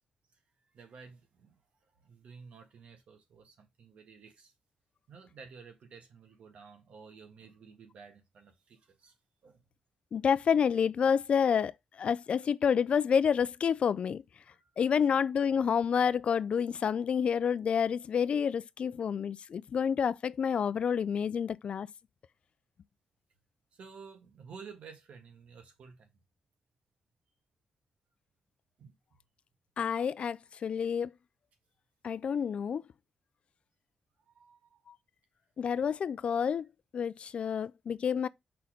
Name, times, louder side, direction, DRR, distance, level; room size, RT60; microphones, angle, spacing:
voice 1, 0.3-1.6 1.9-4.5 5.1-9.2 9.4-9.6 14.5-14.6 23.7-26.1 28.8-28.9 34.3-34.8, right 5 dB, 75° right, 1.7 m, -52 dB
voice 2, 10.1-14.2 14.8-21.9 29.8-31.1 32.0-32.8 34.9-35.0 35.6-36.7 36.9-38.3, left 7 dB, 60° left, 0.4 m, -29 dB
5.6 x 4.0 x 5.1 m
cardioid pair, 80°, 2 cm